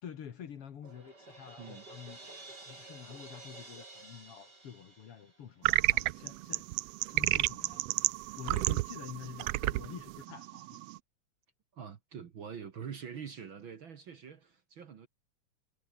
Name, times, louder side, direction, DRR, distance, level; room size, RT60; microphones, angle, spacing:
voice 1, 0.0-6.7 7.1-7.8 8.4-10.8, left 8 dB, 55° left, 2.3 m, -48 dB
Crash cymbal, 0.8-5.8, right 2 dB, 35° right, 6.7 m, -51 dB
sound 1, 5.6-11.0, right 18 dB, 85° right, 1.4 m, -31 dB
voice 2, 11.7-15.1, right 7 dB, 50° right, 1.9 m, -45 dB
omnidirectional pair, 3.4 m